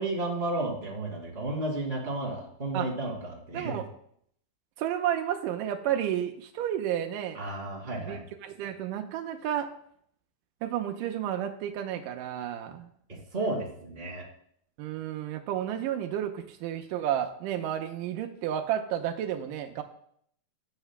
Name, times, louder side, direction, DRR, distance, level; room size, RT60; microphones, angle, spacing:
voice 1, 0.0-3.8 7.4-8.2 13.1-14.2, right 2 dB, 20° right, -1 dB, 2.2 m, -32 dB
voice 2, 3.5-3.8 4.8-7.4 8.0-9.7 10.6-12.9 14.8-19.8, right 10 dB, 85° right, 5 dB, 2.3 m, -31 dB
18.0 x 8.1 x 2.2 m, 0.66 s
omnidirectional pair, 3.8 m